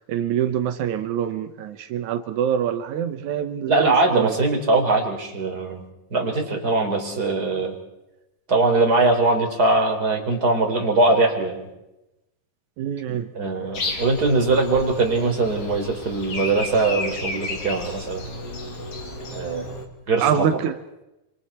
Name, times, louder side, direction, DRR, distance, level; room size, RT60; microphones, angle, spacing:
voice 1, 0.0-4.4 12.8-13.3 19.2-19.4 20.2-20.7, right 9 dB, 85° right, 9 dB, 1.7 m, -25 dB
voice 2, 3.7-5.8 6.1-7.7 8.5-11.7 13.3-18.3 19.3-19.7 20.1-20.5, right 2 dB, 25° right, 2 dB, 3.9 m, -21 dB
Breathing, 13.7-19.8, left 2 dB, 40° left, 3.0 m, -33 dB
28.0 x 26.0 x 4.3 m, 0.93 s
omnidirectional pair, 4.9 m